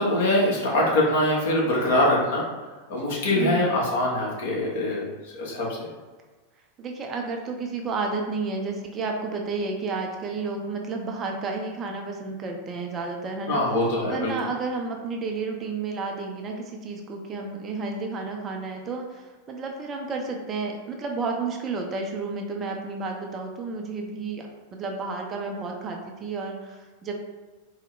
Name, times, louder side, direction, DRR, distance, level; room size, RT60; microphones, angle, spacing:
voice 1, 0.0-2.4 2.9-5.9 13.5-14.3, left 1 dB, 55° left, -4 dB, 1.1 m, -23 dB
voice 2, 6.8-13.6 14.1-27.1, right 4 dB, 25° right, 2 dB, 0.4 m, -31 dB
4.0 x 2.1 x 3.2 m, 1.3 s
figure-of-eight pair, 90°, 0 cm